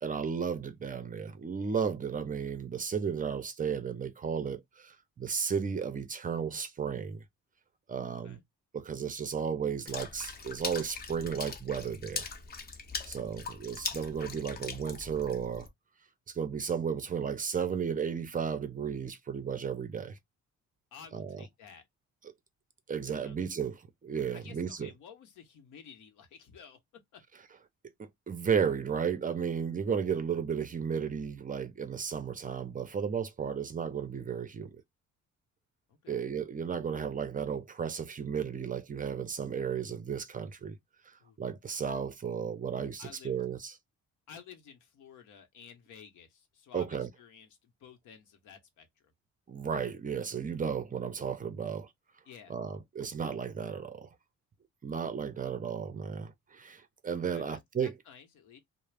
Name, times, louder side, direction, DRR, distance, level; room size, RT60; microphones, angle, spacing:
voice 1, 0.0-7.2 7.9-8.4 8.7-12.3 13.1-15.7 16.3-20.2 21.1-21.4 22.2-22.3 22.9-24.9 28.0-34.8 36.1-40.8 41.1-43.7 46.7-47.1 49.5-51.9 52.5-54.1 54.8-57.9, right 7 dB, 30° right, 0.5 m, -34 dB
Water / Splash splatter, 9.9-15.7, left 4 dB, 30° left, 0.6 m, -41 dB
voice 2, 13.9-14.3 20.9-21.8 23.2-23.4 24.3-26.8 27.1-27.2 35.9-36.3 41.2-41.4 43.0-43.4 44.3-49.1 52.3-52.5 57.1-58.6, left 7 dB, 80° left, 0.9 m, -53 dB
2.3 x 2.0 x 3.2 m
cardioid pair, 90°, 30 cm